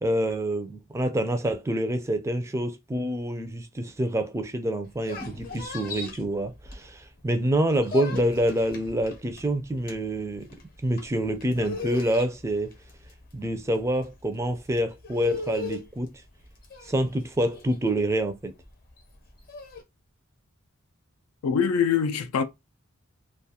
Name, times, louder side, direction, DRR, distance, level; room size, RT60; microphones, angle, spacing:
voice 1, 0.0-10.5 10.8-12.7 13.3-16.1 16.8-18.5, right 1 dB, 15° right, 0.3 m, -27 dB
sound 1, 4.8-7.2 7.5-19.8, left 4 dB, 45° left, 0.7 m, -39 dB
voice 2, 21.4-22.4, left 7 dB, 85° left, 0.4 m, -23 dB
2.3 x 2.3 x 2.7 m
head